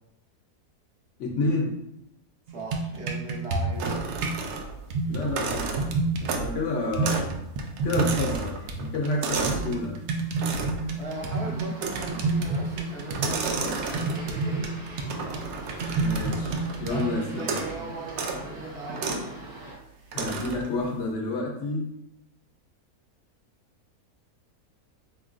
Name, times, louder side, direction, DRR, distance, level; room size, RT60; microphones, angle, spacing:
voice 1, 1.2-1.7 5.1-5.6 6.2-7.3 7.8-10.0 16.0-17.6 20.1-21.9, left 2 dB, 60° left, 0 dB, 0.9 m, -29 dB
voice 2, 2.5-4.1 5.0-5.2 11.0-14.7 16.9-19.4 19.9-20.2, right 3 dB, 50° right, -3 dB, 1.0 m, -38 dB
sound 1, 2.5-4.4 4.9-6.5 6.9-8.4 8.7-17.2, right 3 dB, 70° right, 0.6 m, -29 dB
sound 2, 3.8-4.9 5.2-6.6 7.0-7.3 7.6-9.7 10.4-10.9 11.8-12.3 13.1-14.4 15.1-16.8 17.4-17.8 18.1-18.4 19.0-19.3 20.1-20.7, right 4 dB, 85° right, 1.1 m, -32 dB
sound 3, 11.0-19.8, right 1 dB, 20° right, 0.7 m, -43 dB
4.4 x 3.0 x 2.4 m, 0.85 s
omnidirectional pair, 1.6 m